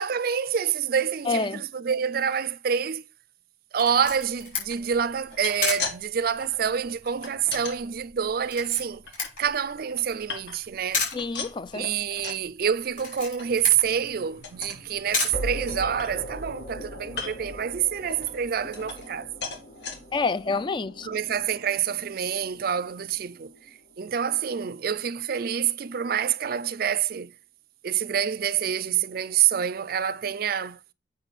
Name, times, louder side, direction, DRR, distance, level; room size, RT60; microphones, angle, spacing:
voice 1, 0.0-3.0 3.7-9.0 9.4-11.0 11.7-19.3 21.0-23.5 24.0-27.3 27.8-30.8, right 8 dB, 50° right, 0.4 m, -27 dB
voice 2, 1.3-1.6 11.1-11.9 20.1-21.1, left 4 dB, 25° left, 0.3 m, -27 dB
Camera, 3.8-16.3, left 5 dB, 45° left, 4.7 m, -35 dB
sound 1, 5.1-6.0 6.3-7.8 8.3-9.3 9.7-10.8 11.1-12.5 12.8-13.1 13.4-13.5 13.9-14.1 14.4-14.8 15.3-15.4 15.7-16.5 17.1-17.6 18.1-19.2 19.4-20.0 20.6-20.7 21.0-21.1, left 5 dB, 65° left, 2.0 m, -37 dB
sound 2, 13.5-24.5, equal, 85° left, 4.0 m, -41 dB
7.8 x 6.1 x 4.1 m
head